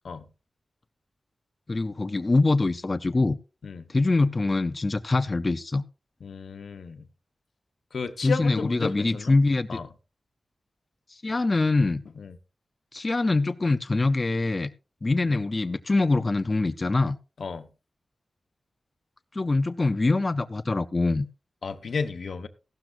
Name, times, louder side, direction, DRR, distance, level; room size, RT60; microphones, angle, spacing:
voice 1, 1.7-3.4 3.9-5.8 8.2-9.8 11.1-12.0 12.9-14.7 15.0-17.2 19.3-21.3, left 3 dB, 30° left, 0.5 m, -24 dB
voice 2, 6.2-7.1 7.9-9.4 9.7-9.9 12.2-12.4 15.3-15.4 17.4-17.7 21.6-22.5, left 5 dB, 75° left, 1.0 m, -33 dB
15.5 x 12.0 x 2.5 m
wide cardioid pair, 125°, 0 cm